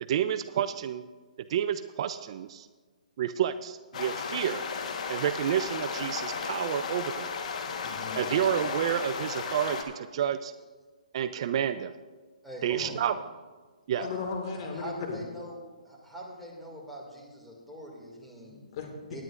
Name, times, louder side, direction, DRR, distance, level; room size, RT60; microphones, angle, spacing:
voice 1, 0.0-1.1 1.5-2.7 3.2-4.6 5.1-7.3 8.2-10.5 11.1-11.9 12.6-13.2 13.9-14.1, right 10 dB, 45° right, 12 dB, 0.4 m, -29 dB
sound 1, 3.9-9.8, left 5 dB, 60° left, 1.3 m, -34 dB
voice 2, 7.8-8.3 12.7-12.9 14.0-15.2 18.4-19.2, left 5 dB, 45° left, 3 dB, 1.9 m, -37 dB
voice 3, 12.4-13.0 14.0-14.1 14.5-18.6 19.1-19.2, right 1 dB, ahead, -4 dB, 2.3 m, -43 dB
19.0 x 9.4 x 2.5 m, 1.4 s
hypercardioid pair, 150°, 4 cm